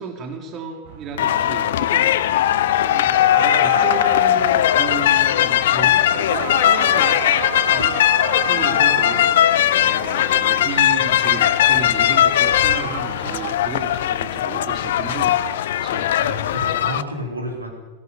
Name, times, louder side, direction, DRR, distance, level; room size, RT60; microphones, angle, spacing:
voice 1, 0.0-7.3 7.7-8.0 8.4-16.1, right 4 dB, 30° right, 4 dB, 3.4 m, -33 dB
sound 1, 0.9-13.6, right 16 dB, 50° right, 0.7 m, -34 dB
sound 2, 1.2-17.0, left 12 dB, 55° left, 0.8 m, -18 dB
voice 2, 16.2-17.7, equal, 80° right, 2 dB, 4.0 m, -30 dB
20.0 x 17.0 x 8.6 m, 1.2 s
figure-of-eight pair, 90°, 0 cm